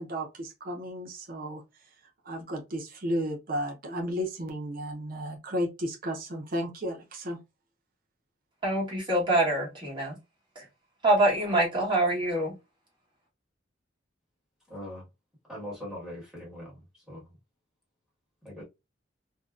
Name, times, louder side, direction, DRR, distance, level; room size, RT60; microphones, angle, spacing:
voice 1, 0.0-1.6 2.2-7.4, equal, 50° right, 0.6 m, -33 dB
voice 2, 8.6-10.1 10.6-10.7 11.0-12.5, right 1 dB, 25° right, 1.1 m, -25 dB
voice 3, 14.7-15.0 15.5-16.8 17.1-17.2 18.4-18.6, left 1 dB, ahead, 1.4 m, -40 dB
2.6 x 2.1 x 2.3 m
head